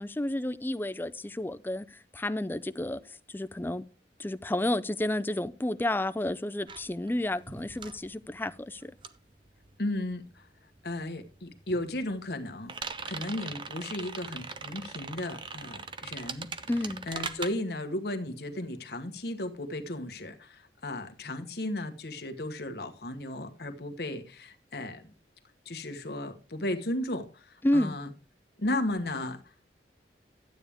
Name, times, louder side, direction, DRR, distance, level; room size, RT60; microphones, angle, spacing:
voice 1, 0.0-3.8 4.2-8.9 16.7-17.1 27.6-28.0, left 1 dB, 10° left, 0.4 m, -31 dB
sound 1, 6.7-10.5 10.7-17.5, right 5 dB, 25° right, 0.6 m, -41 dB
voice 2, 9.8-10.5 10.8-12.7 13.1-16.5 17.1-25.1 25.6-28.1 28.6-29.4, left 1 dB, 60° left, 1.3 m, -35 dB
12.0 x 8.5 x 3.5 m
head